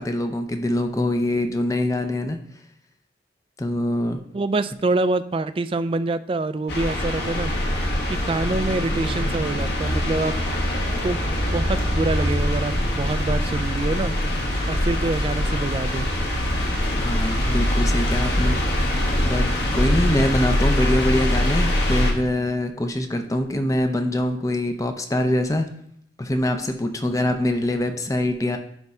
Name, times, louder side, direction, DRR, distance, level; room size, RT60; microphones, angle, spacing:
voice 1, 0.0-2.4 3.6-4.2 17.0-18.6 19.2-19.5 19.7-25.7 26.2-28.6, left 1 dB, 15° left, 6 dB, 0.6 m, -24 dB
voice 2, 4.3-7.5 7.8-10.3 11.0-11.2 11.5-14.1 14.7-16.1, right 2 dB, 30° right, 13 dB, 0.3 m, -26 dB
sound 1, 6.7-22.1, left 1 dB, 60° left, 1.9 m, -23 dB
10.5 x 3.6 x 5.4 m, 0.71 s
head